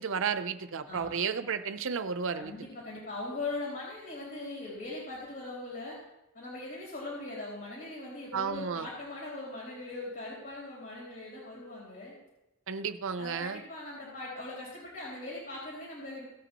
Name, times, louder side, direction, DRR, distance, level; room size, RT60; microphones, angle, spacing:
voice 1, 0.0-2.5 8.3-8.9 12.7-13.6, right 6 dB, 65° right, 11 dB, 0.6 m, -32 dB
voice 2, 0.9-1.2 2.3-6.0 6.3-12.2 13.2-16.3, left 2 dB, 45° left, -6 dB, 3.4 m, -40 dB
16.5 x 8.1 x 3.0 m, 0.96 s
head